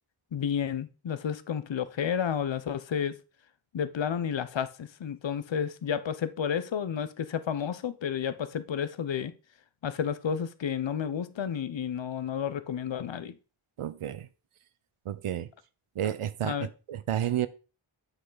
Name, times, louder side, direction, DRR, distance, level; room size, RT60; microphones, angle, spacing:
voice 1, 0.3-3.2 3.7-9.3 9.8-13.4 16.4-16.7, left 8 dB, 65° left, 0.8 m, -31 dB
voice 2, 13.8-14.3 15.1-15.5 16.0-17.5, right 11 dB, 85° right, 0.7 m, -31 dB
8.1 x 6.4 x 3.9 m
wide cardioid pair, 90°, 49 cm